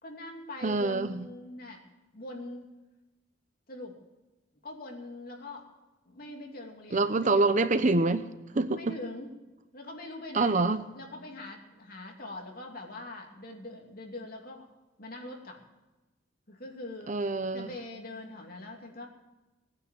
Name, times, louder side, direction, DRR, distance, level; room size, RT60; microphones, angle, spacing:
voice 1, 0.0-1.8 2.1-2.7 3.7-4.0 4.6-5.7 6.0-7.5 8.7-9.3 9.7-14.6 15.0-15.6 16.5-17.1 17.5-19.1, left 2 dB, 50° left, 1 dB, 2.8 m, -43 dB
voice 2, 0.6-1.2 6.9-8.3 8.5-9.0 10.3-10.8 17.1-17.7, right 3 dB, 40° right, 11 dB, 0.8 m, -26 dB
19.0 x 9.8 x 7.6 m, 1.1 s
head